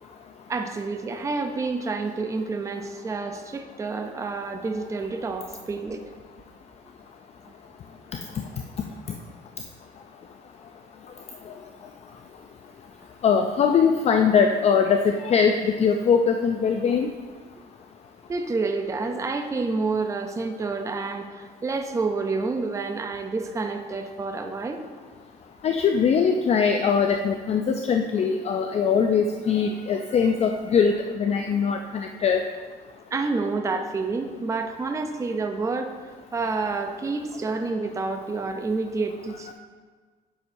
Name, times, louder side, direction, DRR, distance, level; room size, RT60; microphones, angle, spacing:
voice 1, 0.5-6.0 18.3-24.8 33.1-39.5, right 3 dB, 20° right, 6 dB, 0.5 m, -29 dB
voice 2, 13.2-17.1 25.6-32.4 39.5-39.6, left 6 dB, 40° left, 5 dB, 0.4 m, -21 dB
9.9 x 6.2 x 2.6 m, 1.4 s
cardioid pair, 110°, 17 cm